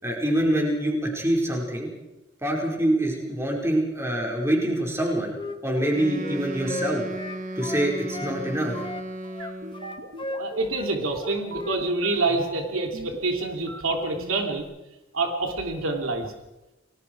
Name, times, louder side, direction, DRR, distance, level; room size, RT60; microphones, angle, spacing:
voice 1, 0.0-1.9 2.4-5.3 5.6-7.0 7.5-8.8, right 1 dB, 15° right, -1 dB, 5.0 m, -25 dB
Wind instrument woodwind instrument, 4.9-8.4 8.7-11.8 12.1-12.3, left 2 dB, 25° left, 1.3 m, -36 dB
Wind instrument woodwind instrument 2, 5.9-10.0, right 1 dB, 40° right, 1.6 m, -35 dB
sound 1, 9.4-14.6, right 2 dB, 60° right, 2.7 m, -40 dB
voice 2, 10.4-14.6 15.1-16.3, right 3 dB, 85° right, 3 dB, 3.2 m, -27 dB
29.5 x 20.5 x 4.8 m, 0.98 s
head